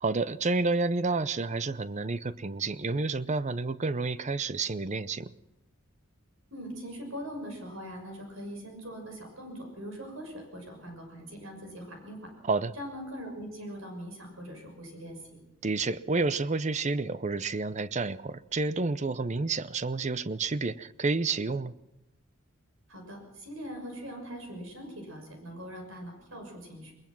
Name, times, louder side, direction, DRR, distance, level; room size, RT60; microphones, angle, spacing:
voice 1, 0.0-5.3 12.4-12.7 15.6-21.7, right 3 dB, 35° right, 16 dB, 0.6 m, -30 dB
voice 2, 6.5-12.2 12.8-15.2 22.9-26.9, equal, 75° right, 3 dB, 6.4 m, -41 dB
21.5 x 21.0 x 6.1 m, 0.89 s
head